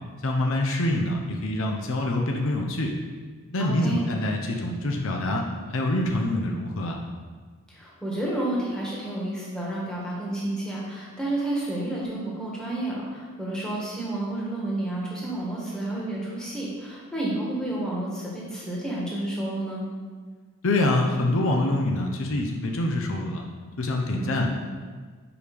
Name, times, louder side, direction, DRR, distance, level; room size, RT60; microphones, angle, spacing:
voice 1, 0.2-2.9 3.5-7.0 20.6-23.4 23.8-24.5, left 1 dB, 65° left, 1 dB, 0.6 m, -25 dB
voice 2, 3.6-4.0 7.7-19.9 24.1-24.5, right 1 dB, 5° left, -6 dB, 1.3 m, -30 dB
4.9 x 4.9 x 5.2 m, 1.5 s
head